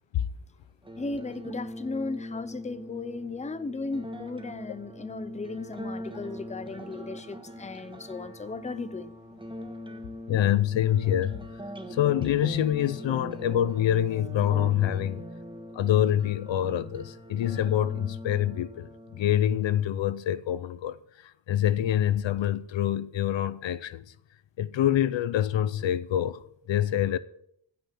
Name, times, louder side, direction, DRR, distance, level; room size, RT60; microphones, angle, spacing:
sound 1, 0.8-19.8, equal, 10° right, 1.6 m, -41 dB
voice 1, 1.0-9.1, left 3 dB, 15° left, 0.7 m, -36 dB
voice 2, 10.3-11.4 11.9-15.2 15.8-18.9 19.2-21.0 21.5-24.0 24.6-26.4 26.7-27.2, left 11 dB, 80° left, 0.8 m, -25 dB
15.5 x 5.9 x 8.5 m
cardioid pair, 95°, 44 cm